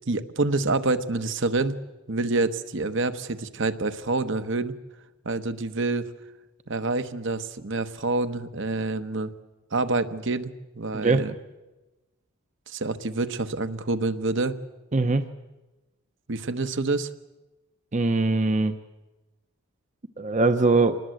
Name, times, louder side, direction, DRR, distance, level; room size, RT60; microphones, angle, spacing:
voice 1, 0.1-1.8 2.1-4.8 5.2-6.1 6.7-9.3 9.7-11.3 12.7-14.6 16.3-17.1, right 3 dB, 60° right, 10 dB, 1.2 m, -27 dB
voice 2, 10.9-11.2 14.9-15.3 17.9-18.8 20.2-21.0, right 3 dB, 35° right, 9 dB, 0.8 m, -22 dB
26.5 x 20.0 x 7.8 m, 1.1 s
head